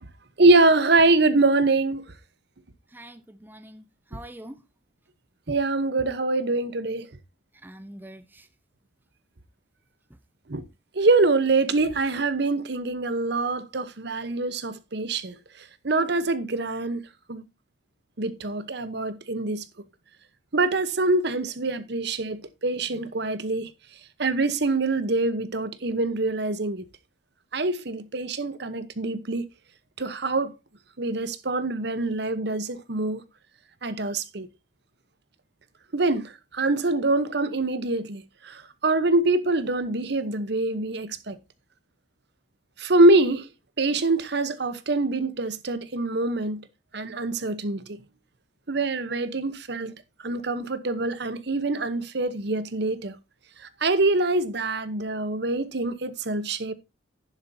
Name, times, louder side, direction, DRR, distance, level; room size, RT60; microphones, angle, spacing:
voice 1, 0.4-2.1 5.5-7.1 10.5-10.6 10.9-15.3 15.8-17.0 17.3-17.4 18.2-19.6 20.5-23.7 24.2-26.8 27.5-29.5 30.0-30.5 31.0-33.2 33.8-34.5 35.9-41.4 42.8-43.5 43.8-46.7 46.9-48.0 48.7-49.9 50.2-53.2 53.8-56.7, right 2 dB, 60° right, 1.0 m, -24 dB
voice 2, 2.9-4.6 7.6-8.5, right 1 dB, 10° right, 0.7 m, -44 dB
11.0 x 10.5 x 2.7 m
head